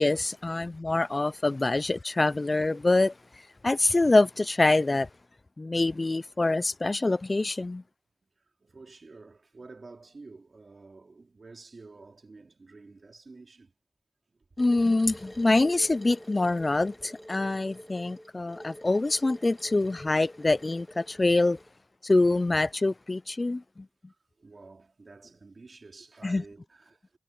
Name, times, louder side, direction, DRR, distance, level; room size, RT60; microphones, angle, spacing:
voice 1, 0.0-3.1 3.6-5.1 5.6-7.8 14.6-21.6 22.0-23.9 26.2-26.4, left 2 dB, 40° left, 0.4 m, -25 dB
voice 2, 8.6-13.7 24.4-27.0, right 3 dB, 60° right, 3.0 m, -50 dB
sound 1, 14.6-21.7, equal, 5° left, 1.6 m, -48 dB
cardioid pair, 50°, 0 cm